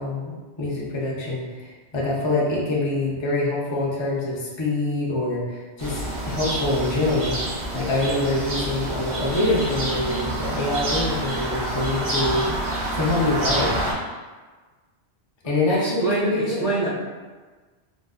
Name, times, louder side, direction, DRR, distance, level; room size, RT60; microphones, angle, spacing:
voice 1, 0.0-7.4 7.7-12.4 12.9-13.7 15.4-16.7, left 2 dB, 35° left, -5 dB, 0.5 m, -25 dB
sound 1, 5.8-13.9, right 1 dB, 75° right, 1.1 m, -27 dB
voice 2, 15.7-16.9, right 2 dB, 40° right, -9 dB, 0.8 m, -25 dB
3.7 x 2.5 x 2.4 m, 1.3 s
omnidirectional pair, 1.1 m